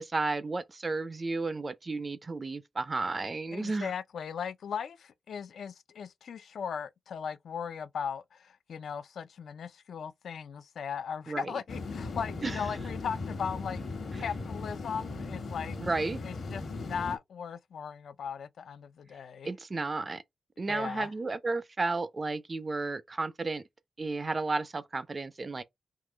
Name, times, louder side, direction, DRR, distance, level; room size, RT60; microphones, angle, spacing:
voice 1, 0.0-3.9 11.3-11.6 12.4-12.6 15.8-16.2 19.4-20.2 20.6-23.6 24.0-25.6, right 3 dB, 25° right, 0.4 m, -33 dB
voice 2, 3.5-13.8 14.1-15.8 16.2-19.5 20.7-21.1, left 7 dB, 75° left, 0.4 m, -38 dB
sound 1, 11.7-17.2, left 3 dB, 60° left, 1.2 m, -38 dB
3.7 x 2.7 x 3.7 m
wide cardioid pair, 160°, 0 cm